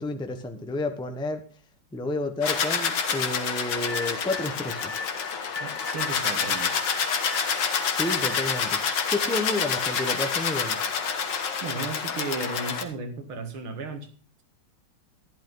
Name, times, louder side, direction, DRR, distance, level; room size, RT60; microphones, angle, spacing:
voice 1, 0.0-1.4 1.9-5.0 7.9-8.8 9.1-10.8, left 2 dB, 5° left, 6 dB, 0.9 m, -30 dB
sound 1, 2.4-12.8, left 6 dB, 60° left, 1.9 m, -28 dB
sound 2, 3.9-8.8, left 4 dB, 80° left, 2.2 m, -39 dB
voice 2, 5.6-6.8 11.6-14.1, right 3 dB, 80° right, 7 dB, 2.7 m, -34 dB
13.5 x 11.5 x 4.0 m, 0.39 s
omnidirectional pair, 2.3 m